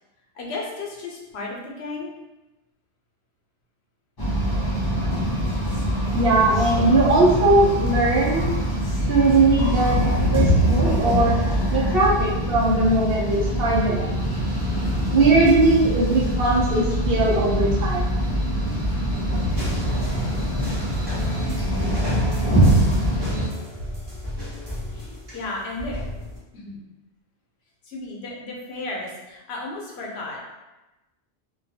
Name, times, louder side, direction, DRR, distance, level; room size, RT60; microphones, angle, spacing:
voice 1, 0.4-2.1 24.9-26.0 26.5-26.8 27.8-30.4, left 2 dB, 75° left, -2 dB, 0.9 m, -34 dB
sound 1, 4.2-23.5, equal, 35° left, 0.4 m, -23 dB
voice 2, 6.1-8.5 9.1-11.4 11.7-14.5 15.1-18.2, right 2 dB, 65° right, -3 dB, 0.8 m, -20 dB
sound 2, 19.6-26.4, left 1 dB, 25° right, 0.8 m, -35 dB
2.3 x 2.2 x 2.6 m, 1.0 s
omnidirectional pair, 1.1 m